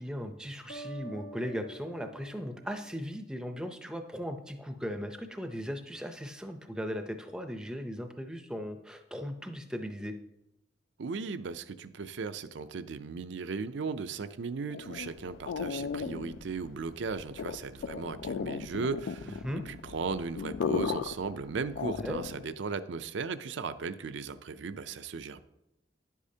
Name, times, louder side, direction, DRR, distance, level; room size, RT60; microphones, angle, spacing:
voice 1, 0.0-10.1 19.4-19.6 22.0-22.2, equal, 5° right, 6 dB, 0.5 m, -37 dB
sound 1, 0.7-3.5, right 2 dB, 85° left, 1.2 m, -48 dB
voice 2, 11.0-25.4, right 4 dB, 70° right, 12 dB, 0.4 m, -37 dB
sound 2, 14.7-22.5, left 6 dB, 70° left, 0.3 m, -36 dB
10.5 x 8.3 x 2.8 m, 0.90 s
head